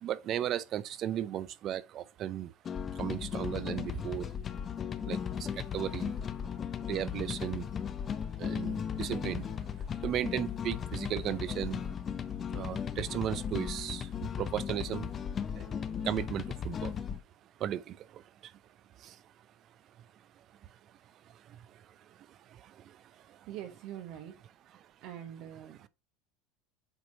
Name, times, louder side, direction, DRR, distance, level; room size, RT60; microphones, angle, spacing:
voice 1, 0.0-2.5 3.0-4.3 5.0-6.1 6.9-7.7 8.4-9.5 10.0-11.8 12.5-14.1 14.4-15.1 15.6-15.7 16.0-17.0 17.6-18.2 19.0-19.1, right 11 dB, 45° right, 0.5 m, -35 dB
sound 1, 2.6-17.2, left 7 dB, 30° left, 0.5 m, -36 dB
voice 2, 23.5-24.3 25.0-25.9, right 11 dB, 60° right, 0.9 m, -43 dB
8.0 x 2.9 x 4.1 m
supercardioid pair, 125°, 0 cm